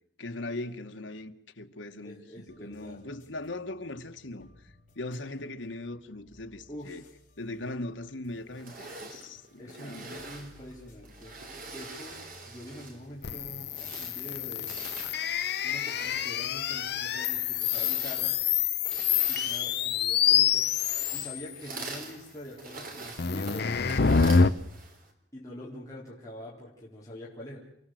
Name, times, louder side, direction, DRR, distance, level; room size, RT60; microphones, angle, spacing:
voice 1, 0.2-7.0 7.4-10.2, left 2 dB, 85° left, 1.6 m, -40 dB
voice 2, 2.0-3.0 6.7-7.1 7.5-7.7 9.6-12.2 12.5-13.7 14.0-14.7 15.6-18.4 19.3-20.7 21.1-24.4 25.3-27.6, left 1 dB, 20° left, 4.1 m, -45 dB
sound 1, 2.5-17.7, left 1 dB, 45° left, 4.9 m, -60 dB
sound 2, 8.5-13.1 13.6-25.1, right 3 dB, 50° right, 4.0 m, -45 dB
sound 3, 13.2-21.4 23.2-24.5, left 7 dB, 60° left, 0.8 m, -27 dB
29.5 x 16.0 x 7.8 m
head